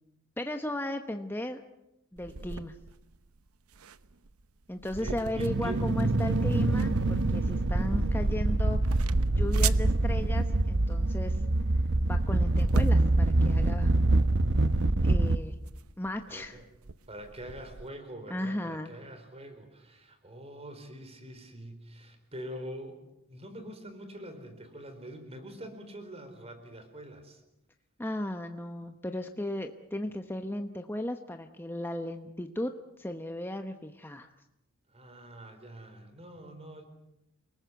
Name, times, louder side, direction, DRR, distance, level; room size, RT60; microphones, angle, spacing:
voice 1, 0.4-1.6 2.1-2.8 4.7-9.0 9.3-11.4 12.0-13.9 15.0-15.5 16.0-16.6 18.3-18.9 28.0-32.7 33.0-34.3, left 1 dB, 10° left, 6 dB, 1.0 m, -35 dB
sound 1, 2.2-17.9, right 5 dB, 90° right, 0.9 m, -41 dB
voice 2, 5.0-5.8 16.3-16.7 17.1-23.0 23.3-27.4 34.9-36.8, right 1 dB, 30° right, 8 dB, 4.4 m, -44 dB
sound 2, 5.3-15.4, right 2 dB, 55° right, 0.9 m, -25 dB
29.5 x 19.5 x 8.2 m, 0.89 s
head